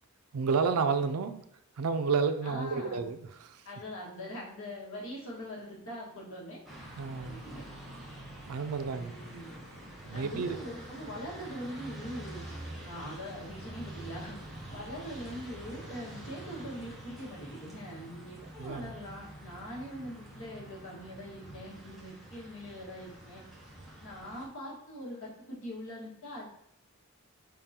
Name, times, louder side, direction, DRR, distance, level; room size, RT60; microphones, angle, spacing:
voice 1, 0.3-1.4 1.8-3.6 7.0-7.4 8.5-9.1 10.1-10.6 18.6-18.9, right 5 dB, 85° right, 10 dB, 0.4 m, -31 dB
voice 2, 2.4-3.0 3.6-6.6 7.2-7.6 8.9-9.5 10.1-12.4 12.8-14.4 14.7-23.4 24.0-26.5, equal, 65° left, -5 dB, 1.6 m, -42 dB
sound 1, 6.7-24.5, right 1 dB, ahead, 0.9 m, -46 dB
5.1 x 3.7 x 2.8 m, 0.72 s
head